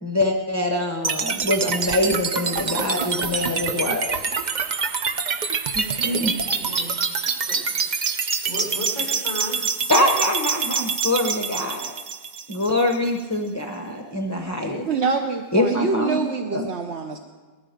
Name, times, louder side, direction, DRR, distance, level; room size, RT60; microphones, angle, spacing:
voice 1, 0.0-4.2 5.7-6.3 8.1-8.2 9.9-11.9 12.5-14.9 15.5-16.2 16.5-16.6, left 1 dB, 15° left, 0.7 m, -24 dB
sound 1, 1.0-13.1, right 5 dB, 80° right, 0.4 m, -26 dB
voice 2, 2.6-3.4 6.4-7.9 8.4-9.6, left 1 dB, 25° right, 6.5 m, -37 dB
voice 3, 14.9-17.2, right 4 dB, 50° right, 0.8 m, -25 dB
19.0 x 14.0 x 5.2 m
omnidirectional pair, 1.9 m